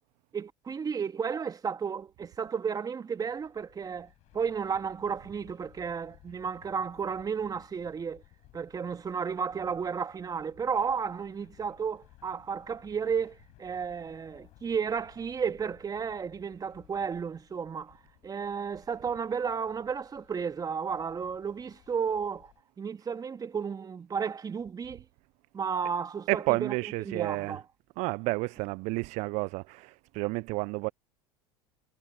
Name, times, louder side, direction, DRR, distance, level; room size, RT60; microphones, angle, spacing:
voice 1, 0.3-8.2 8.5-17.9 18.2-25.0 25.5-27.6, right 6 dB, 25° right, 2.0 m, -33 dB
sound 1, 3.1-22.6, left 18 dB, 55° left, 7.7 m, -60 dB
voice 2, 26.3-27.6 28.0-30.9, right 25 dB, 55° right, 0.6 m, -31 dB
hypercardioid pair, 75°, 14 cm